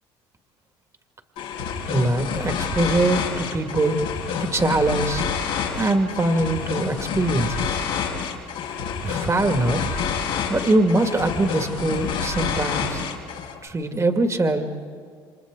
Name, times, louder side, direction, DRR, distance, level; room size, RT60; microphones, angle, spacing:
sound 1, 1.4-13.6, left 6 dB, 80° left, 4.4 m, -28 dB
voice 1, 1.9-4.0 4.4-5.2 5.8-7.8 9.0-9.9 10.5-13.0 13.6-14.9, right 2 dB, 25° right, 5 dB, 2.2 m, -22 dB
29.5 x 26.5 x 3.9 m, 2.1 s
hypercardioid pair, 65°, 12 cm